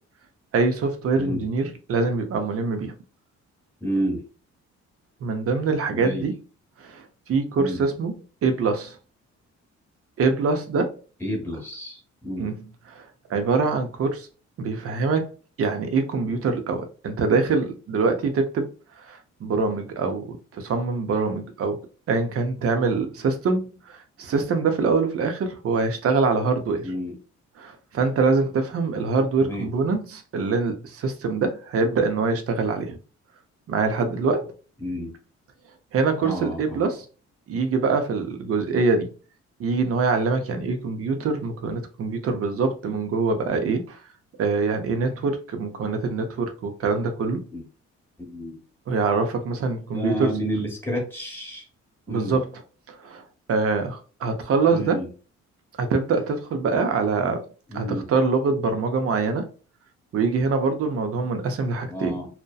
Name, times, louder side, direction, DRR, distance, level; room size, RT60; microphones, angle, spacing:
voice 1, 0.5-2.9 5.2-6.3 6.8-8.1 8.4-9.0 10.2-10.9 12.4-12.5 12.9-14.3 14.6-15.3 15.6-18.7 19.0-21.8 22.1-26.9 27.6-33.0 33.7-34.5 35.9-37.1 37.5-39.1 39.6-44.0 44.4-47.4 48.9-50.4 52.1-52.5 52.9-55.0 55.8-57.4 57.7-59.5 60.1-62.2, right 4 dB, 50° right, 0.6 m, -24 dB
voice 2, 3.8-4.2 5.9-6.3 7.6-7.8 11.2-12.5 26.8-27.2 29.4-29.7 34.8-35.1 36.2-36.9 47.5-47.6 48.2-48.6 49.9-51.7 52.1-52.4 54.7-55.1 57.7-58.0 61.9-62.3, equal, 10° left, 1.0 m, -30 dB
2.7 x 2.1 x 2.3 m
cardioid pair, 90°, 30 cm